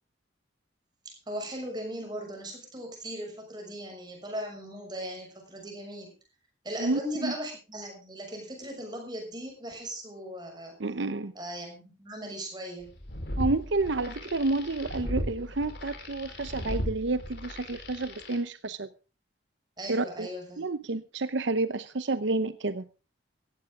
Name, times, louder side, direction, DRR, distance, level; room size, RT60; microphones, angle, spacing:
voice 1, 1.0-6.1 6.6-10.8 11.3-12.9 19.8-20.6, equal, 20° right, 2 dB, 6.5 m, -38 dB
voice 2, 6.8-7.3 10.8-11.3 13.4-18.9 19.9-20.3 20.6-22.9, right 2 dB, 75° right, 13 dB, 0.8 m, -30 dB
sound 1, 12.9-18.4, equal, 55° left, 4.4 m, -36 dB
17.0 x 15.0 x 3.7 m, 0.33 s
head